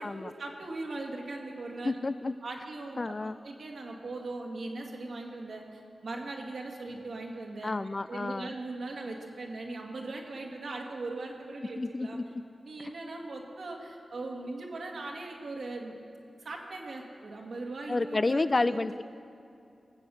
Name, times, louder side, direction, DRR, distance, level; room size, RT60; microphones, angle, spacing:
voice 1, 0.0-2.0 2.4-7.8 8.1-12.2 12.6-15.9 16.4-18.9, right 2 dB, 75° right, 0 dB, 2.0 m, -39 dB
voice 2, 1.8-2.3 3.0-3.4 7.6-8.5 11.8-12.4 12.8-12.9 17.9-19.0, left 2 dB, 45° left, 15 dB, 0.4 m, -30 dB
18.0 x 7.8 x 6.9 m, 2.6 s
cardioid pair, 40°, 0 cm